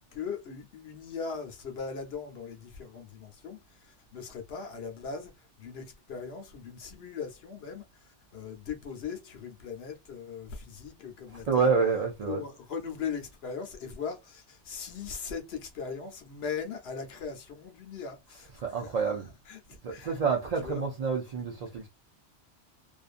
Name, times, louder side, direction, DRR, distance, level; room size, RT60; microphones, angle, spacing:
voice 1, 0.1-11.7 12.3-18.5 18.8-19.0 19.5-20.2 20.6-20.8, left 6 dB, 60° left, 1.0 m, -39 dB
voice 2, 11.3-12.4 18.3-19.3 19.8-21.9, right 5 dB, 55° right, 0.4 m, -28 dB
2.5 x 2.5 x 2.4 m
omnidirectional pair, 1.2 m